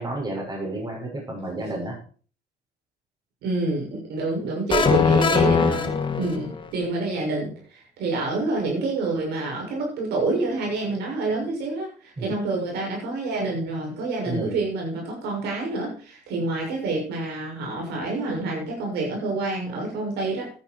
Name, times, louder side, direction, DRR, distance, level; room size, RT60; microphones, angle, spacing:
voice 1, 0.0-2.0 12.2-12.3 14.2-14.5, right 2 dB, 25° right, -1 dB, 6.2 m, -31 dB
voice 2, 3.4-20.5, right 3 dB, 80° right, 0 dB, 7.1 m, -27 dB
sound 1, 4.7-6.7, left 5 dB, 30° left, 1.9 m, -20 dB
13.0 x 10.5 x 4.7 m, 0.41 s
cardioid pair, 110°, 17 cm